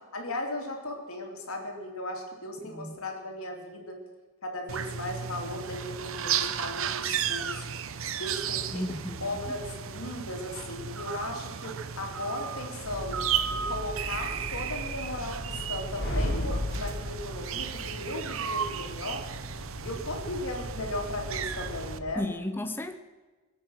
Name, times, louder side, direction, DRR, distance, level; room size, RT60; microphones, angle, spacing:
voice 1, 0.1-4.0 4.4-7.7 8.2-8.9 9.2-13.2 13.5-19.3 19.8-22.2, left 1 dB, 85° left, 2 dB, 2.8 m, -36 dB
voice 2, 2.6-3.0 8.7-9.4 22.2-23.0, left 1 dB, 10° left, 8 dB, 0.6 m, -34 dB
sound 1, 4.7-22.0, right 8 dB, 70° right, 0.7 m, -34 dB
sound 2, 12.8-22.1, left 1 dB, 50° left, 3.1 m, -37 dB
23.0 x 8.2 x 6.3 m, 1.3 s
head